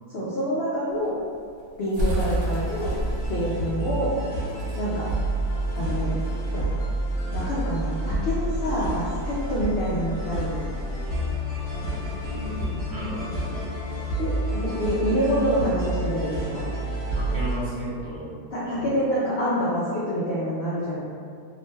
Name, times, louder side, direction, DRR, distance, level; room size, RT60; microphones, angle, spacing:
voice 1, 0.1-1.1 1.8-2.9 3.3-4.1 4.8-5.1 5.8-6.1 6.5-6.6 7.3-10.7 14.2-16.8 18.5-21.0, equal, 70° left, -9 dB, 0.5 m, -27 dB
sound 1, 0.9-6.5, equal, 75° right, 1.2 m, -33 dB
sound 2, 2.0-17.6, right 1 dB, 40° left, 1.0 m, -29 dB
voice 2, 12.2-13.7 17.1-18.2 18.6-18.8, right 1 dB, 45° right, -12 dB, 0.6 m, -34 dB
2.8 x 2.1 x 3.1 m, 2.3 s
omnidirectional pair, 1.6 m